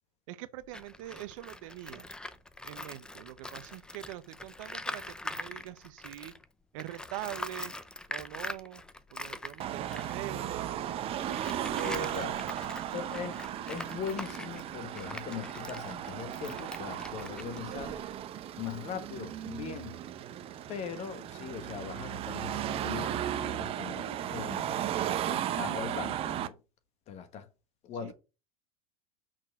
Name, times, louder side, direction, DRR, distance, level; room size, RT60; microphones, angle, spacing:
voice 1, 0.3-2.1 2.6-6.3 6.7-7.7 8.1-8.8 9.1-10.7 11.8-12.5 28.0-28.1, right 15 dB, 60° right, 0.8 m, -43 dB
Tools, 0.6-6.4 6.8-18.2, left 2 dB, 5° left, 0.5 m, -43 dB
Car passing by / Traffic noise roadway noise / Engine, 9.6-26.5, right 11 dB, 30° right, 0.7 m, -36 dB
voice 2, 11.8-12.3 12.9-13.4 13.7-18.0 18.6-20.0 20.7-26.6 27.1-27.5 27.8-28.1, left 7 dB, 35° left, 1.3 m, -40 dB
6.1 x 4.4 x 5.9 m
supercardioid pair, 130°, 18 cm